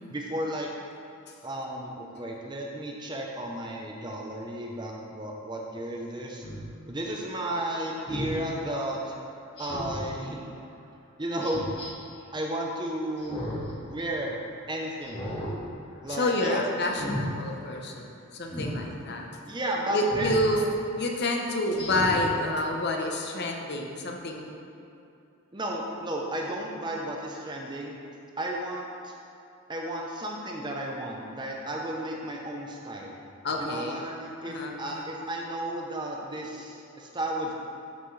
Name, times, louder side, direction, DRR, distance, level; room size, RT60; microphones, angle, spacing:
voice 1, 0.1-0.7 1.4-6.4 6.9-9.1 9.6-10.4 11.2-11.6 12.3-13.5 13.8-14.4 14.7-15.2 16.0-16.6 19.5-20.3 25.5-28.0 28.4-29.2 29.7-33.2 33.6-37.6, right 1 dB, 20° right, 0 dB, 0.7 m, -33 dB
Speech synthesizer, 6.4-6.6 8.1-8.3 9.6-10.1 11.4-11.9 13.2-13.7 14.1-14.2 15.0-15.5 15.9-16.2 16.8-17.3 18.5-18.8 20.1-20.5 20.9-21.0 21.7-22.2 22.7-22.8, equal, 25° left, 1.6 m, -35 dB
voice 2, 16.1-18.1 18.3-19.3 19.9-20.6 21.0-24.5 33.4-34.0 34.4-35.0, left 1 dB, 45° left, 1 dB, 0.8 m, -28 dB
12.5 x 5.9 x 3.3 m, 2.6 s
head